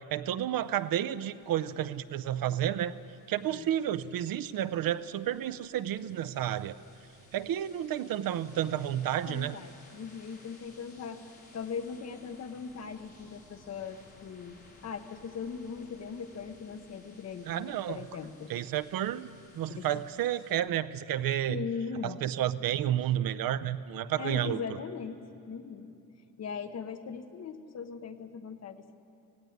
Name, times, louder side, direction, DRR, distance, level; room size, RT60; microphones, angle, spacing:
voice 1, 0.0-2.9 3.3-6.8 7.3-9.6 17.5-18.0 18.5-19.3 19.5-21.6 22.0-24.6, right 11 dB, 65° right, 13 dB, 0.6 m, -31 dB
sound 1, 0.6-20.6, left 2 dB, 25° left, 3.2 m, -59 dB
voice 2, 9.3-11.2 11.5-14.6 14.8-18.5 19.7-19.9 21.5-22.2 24.2-25.9 26.4-29.0, left 6 dB, 45° left, 8 dB, 1.0 m, -39 dB
17.0 x 16.5 x 9.4 m, 2.7 s
wide cardioid pair, 175°, 36 cm